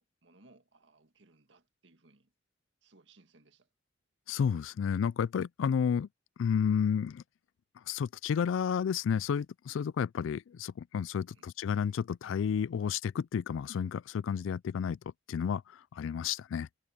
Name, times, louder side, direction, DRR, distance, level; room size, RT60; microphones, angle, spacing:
voice 1, 0.0-2.3 2.8-3.7 11.3-11.5, right 2 dB, 75° right, 1.8 m, -63 dB
voice 2, 4.3-6.1 6.4-7.2 7.9-15.0 15.3-16.7, left 7 dB, 90° left, 0.3 m, -31 dB
head